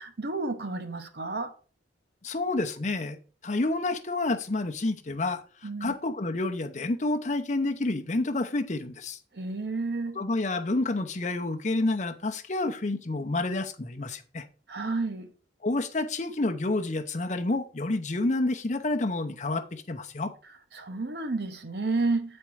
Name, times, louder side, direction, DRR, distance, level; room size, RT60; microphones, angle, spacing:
voice 1, 0.0-1.5 5.6-5.9 9.3-10.2 14.7-15.3 20.7-22.4, right 3 dB, 55° right, 0.9 m, -31 dB
voice 2, 2.2-3.2 3.4-5.4 5.8-9.2 10.2-14.4 15.6-20.3, left 2 dB, 40° left, 0.7 m, -29 dB
8.2 x 4.3 x 4.8 m
head